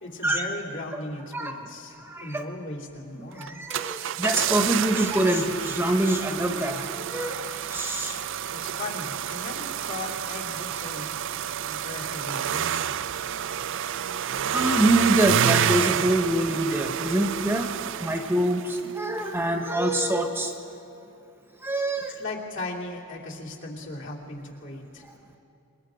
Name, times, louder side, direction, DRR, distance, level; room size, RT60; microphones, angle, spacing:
voice 1, 0.0-3.6 8.5-11.1 11.6-12.7 22.1-25.0, left 2 dB, 60° left, -2 dB, 2.9 m, -37 dB
voice 2, 2.1-2.4 3.3-8.2 14.5-17.7 18.0-20.5 21.6-22.1, right 1 dB, 10° right, 4 dB, 1.1 m, -25 dB
sound 1, 3.4-18.9 19.2-19.3, right 9 dB, 60° right, 0.5 m, -29 dB
26.5 x 22.0 x 5.1 m, 2.8 s
head